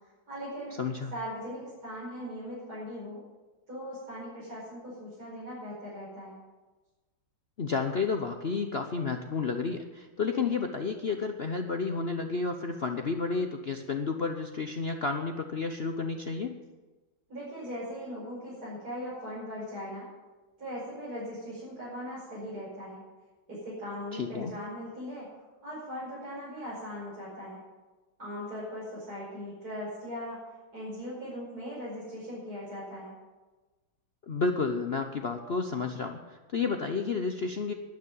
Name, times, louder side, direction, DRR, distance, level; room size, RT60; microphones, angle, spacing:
voice 1, 0.3-0.8 1.1-3.2 3.7-6.4 17.3-20.1 20.6-23.0 23.5-25.3 25.6-27.6 28.2-30.4 30.7-33.1, equal, 45° right, -9 dB, 5.8 m, -39 dB
voice 2, 0.8-1.1 7.6-16.5 24.1-24.5 34.3-37.7, left 4 dB, 60° left, 5 dB, 0.6 m, -31 dB
11.5 x 9.6 x 9.0 m, 1.2 s
omnidirectional pair, 2.2 m